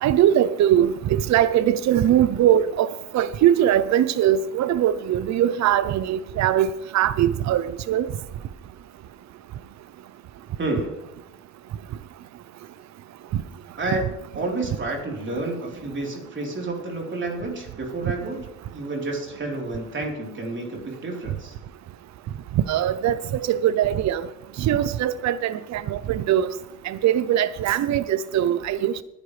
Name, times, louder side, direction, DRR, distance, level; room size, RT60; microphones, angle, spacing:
voice 1, 0.0-8.1 13.3-13.4 22.7-24.3 24.6-26.5 26.8-29.0, right 11 dB, 65° right, 15 dB, 0.6 m, -21 dB
voice 2, 10.6-11.0 13.8-14.0 14.3-21.6, right 2 dB, 40° right, -1 dB, 3.8 m, -30 dB
20.0 x 10.5 x 3.3 m, 0.90 s
cardioid pair, 90°, 30 cm